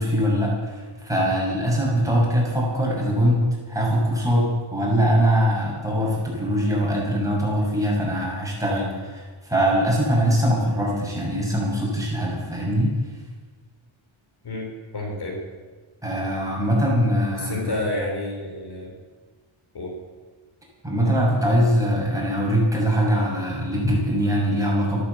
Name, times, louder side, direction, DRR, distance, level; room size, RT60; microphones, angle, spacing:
voice 1, 0.0-9.2 9.5-12.9 16.0-17.6 20.8-25.0, equal, 5° right, -5 dB, 6.4 m, -22 dB
voice 2, 14.9-15.4 17.3-18.9 19.7-19.9, left 2 dB, 50° left, 1 dB, 3.5 m, -29 dB
14.5 x 12.0 x 8.1 m, 1.4 s
wide cardioid pair, 140°, 48 cm